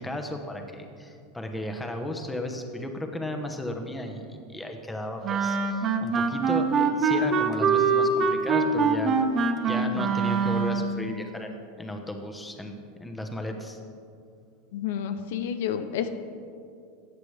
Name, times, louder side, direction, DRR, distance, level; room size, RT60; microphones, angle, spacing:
voice 1, 0.0-9.1 9.7-13.8, left 1 dB, 10° left, 4 dB, 1.0 m, -35 dB
Wind instrument woodwind instrument, 5.2-11.0, right 4 dB, 35° right, 0.8 m, -24 dB
voice 2, 14.7-16.1, left 9 dB, 75° left, 9 dB, 0.6 m, -30 dB
14.5 x 8.1 x 3.3 m, 2.4 s
supercardioid pair, 120°, 0 cm